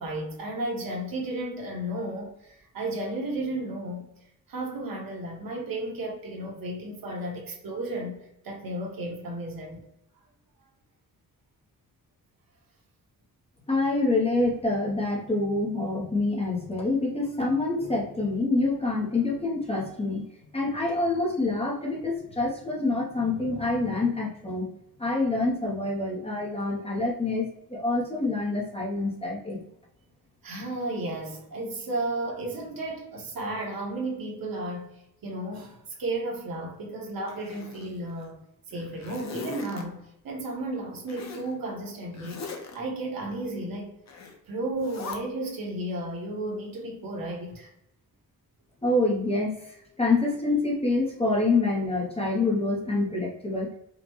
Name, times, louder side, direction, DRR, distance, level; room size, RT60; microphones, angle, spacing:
voice 1, 0.0-4.1 4.5-8.2 8.4-9.8 30.4-34.9 35.2-38.4 38.7-44.0 44.4-47.7, right 1 dB, 70° right, 0 dB, 1.2 m, -33 dB
voice 2, 13.7-20.2 20.5-24.7 25.0-29.6 48.8-53.7, left 2 dB, 15° left, -3 dB, 0.7 m, -26 dB
Zipper (clothing), 37.3-38.3 38.7-39.8 41.1-41.5 42.1-42.8 44.1-44.4 44.8-45.2, left 4 dB, 50° left, 0.7 m, -40 dB
5.2 x 2.2 x 3.0 m, 0.80 s
wide cardioid pair, 175°, 36 cm